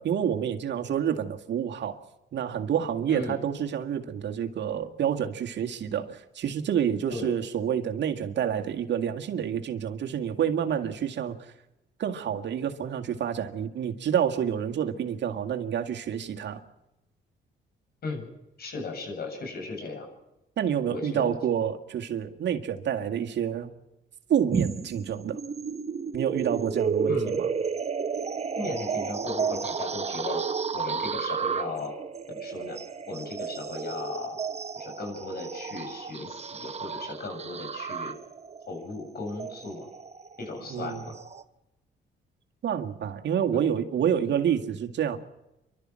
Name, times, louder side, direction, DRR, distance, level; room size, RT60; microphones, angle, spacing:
voice 1, 0.0-2.0 2.3-11.5 12.0-16.6 20.6-23.7 24.3-25.4 26.1-27.5 40.7-41.0 42.6-45.2, right 9 dB, 65° right, 5 dB, 2.0 m, -28 dB
voice 2, 3.1-3.4 7.1-7.4 18.0-18.3 18.6-20.1 20.9-21.3 27.1-27.4 28.6-30.4 30.7-32.0 32.3-32.8 33.1-34.4 34.8-38.2 38.7-39.9 40.4-41.1 43.5-43.6, left 3 dB, 50° left, 3 dB, 7.9 m, -36 dB
sound 1, 24.5-41.4, right 6 dB, 35° right, 1.2 m, -32 dB
30.0 x 12.5 x 7.6 m, 0.93 s
cardioid pair, 90°, 20 cm